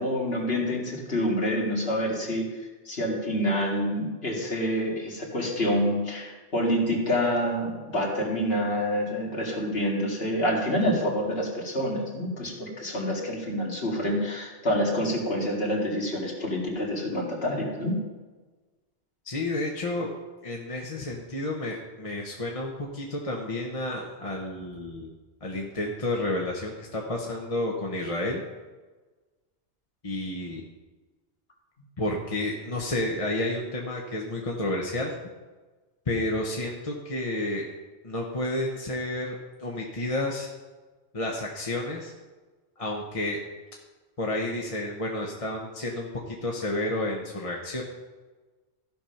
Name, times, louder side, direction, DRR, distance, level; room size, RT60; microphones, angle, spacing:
voice 1, 0.0-2.5 2.9-18.0, equal, 60° left, -2 dB, 2.5 m, -27 dB
voice 2, 19.2-20.1 20.4-25.1 25.4-28.4 30.0-30.6 32.0-35.1 36.1-37.7 38.0-40.5 41.1-42.1 42.8-43.4 44.2-47.8, left 1 dB, 30° left, -1 dB, 1.1 m, -30 dB
14.5 x 5.3 x 5.8 m, 1.3 s
omnidirectional pair, 1.2 m